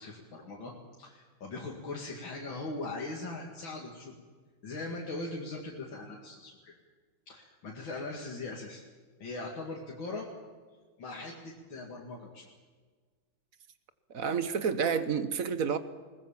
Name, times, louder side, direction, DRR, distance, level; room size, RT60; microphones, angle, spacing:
voice 1, 0.0-4.1 4.6-6.7 7.3-8.8 9.2-10.3 11.0-12.5, left 2 dB, 85° left, -2 dB, 3.1 m, -40 dB
voice 2, 14.1-15.8, right 6 dB, 50° right, 12 dB, 1.4 m, -29 dB
21.0 x 19.5 x 7.3 m, 1.5 s
omnidirectional pair, 2.1 m